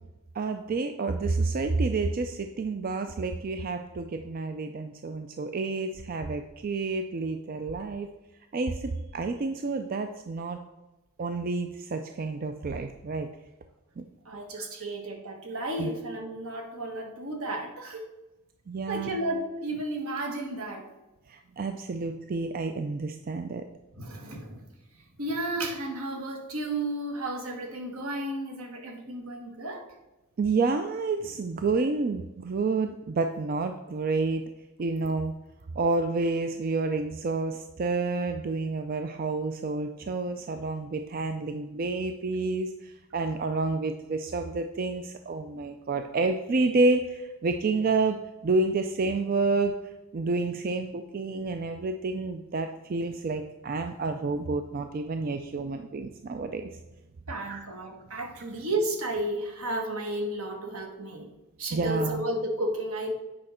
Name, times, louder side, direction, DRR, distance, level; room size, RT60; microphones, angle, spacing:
voice 1, 0.3-8.1 8.5-10.6 11.2-13.3 14.0-14.1 14.6-14.8 15.8-15.9 18.7-19.2 21.3-23.7 30.4-34.4 34.8-35.4 35.7-49.7 50.1-56.7 57.5-57.6 61.7-62.2, right 3 dB, 40° right, 7 dB, 0.4 m, -29 dB
voice 2, 14.2-18.0 18.9-20.9 24.0-24.7 25.2-29.9 57.3-61.3 61.6-63.1, right 1 dB, 75° right, 2 dB, 1.4 m, -33 dB
8.7 x 5.2 x 4.3 m, 1.1 s
head